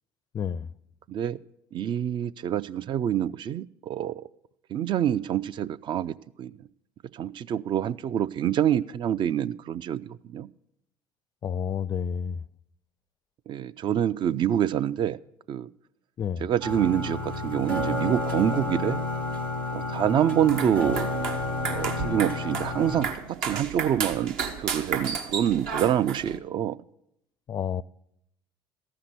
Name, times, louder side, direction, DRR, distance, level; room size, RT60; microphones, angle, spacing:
voice 1, 0.3-0.7 11.4-12.4 16.2-16.4 27.5-27.8, left 8 dB, 35° left, 0.4 m, -29 dB
voice 2, 1.1-1.4 1.7-4.3 4.7-6.5 7.1-10.5 13.5-15.2 15.5-15.7 16.4-19.0 19.7-21.1 21.7-26.8, right 10 dB, 45° right, 0.4 m, -26 dB
sound 1, 16.6-23.1, left 2 dB, 90° right, 1.3 m, -30 dB
sound 2, 20.4-26.4, right 6 dB, 70° right, 1.1 m, -33 dB
14.0 x 5.8 x 8.0 m
hypercardioid pair, 65°, 11 cm